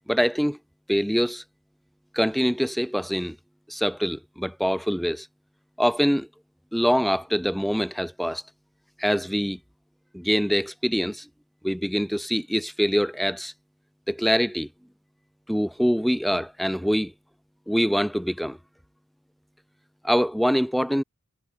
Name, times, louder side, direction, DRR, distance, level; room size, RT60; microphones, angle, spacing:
voice 1, 0.1-0.6 0.9-1.4 2.1-3.4 3.7-5.3 5.8-6.3 6.7-8.4 9.0-9.6 10.1-11.2 11.6-13.5 14.1-14.7 15.5-17.1 17.7-18.6 20.0-21.0, equal, ahead, 3.3 m, -24 dB
head